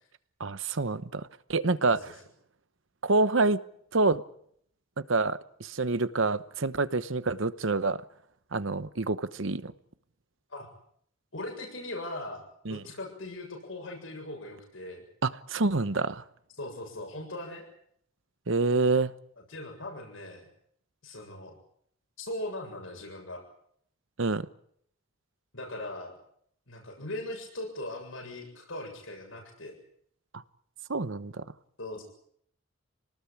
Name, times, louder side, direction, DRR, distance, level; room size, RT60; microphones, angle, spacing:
voice 1, 0.4-2.0 3.0-3.6 3.9-4.2 5.1-8.0 8.5-9.7 12.7-12.8 15.2-16.2 18.5-19.1 24.2-24.5 30.9-31.4, right 3 dB, 70° right, 14 dB, 1.1 m, -27 dB
voice 2, 11.3-12.4 12.7-15.1 16.6-17.6 19.5-20.5 21.0-21.5 22.2-23.4 25.5-26.1 26.7-29.8 31.8-32.0, left 1 dB, 70° left, 2 dB, 7.3 m, -39 dB
26.0 x 19.0 x 8.8 m, 0.69 s
head